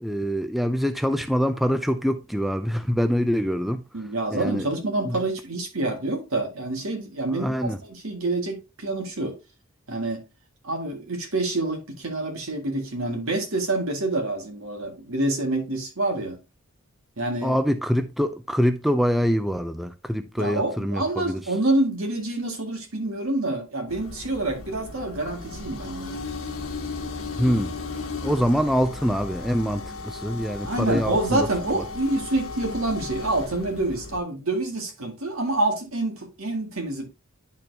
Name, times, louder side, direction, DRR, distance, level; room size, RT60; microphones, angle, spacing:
voice 1, 0.0-3.8 4.3-4.7 5.0-5.2 7.3-7.8 17.4-21.4 27.4-31.5 31.7-31.8, equal, ahead, 0.3 m, -25 dB
voice 2, 3.9-9.3 9.9-10.2 10.6-16.4 17.2-17.6 20.4-26.2 30.7-37.0, right 2 dB, 75° right, 1.9 m, -27 dB
sound 1, 23.9-34.2, left 3 dB, 75° left, 1.4 m, -35 dB
10.5 x 4.3 x 2.7 m
head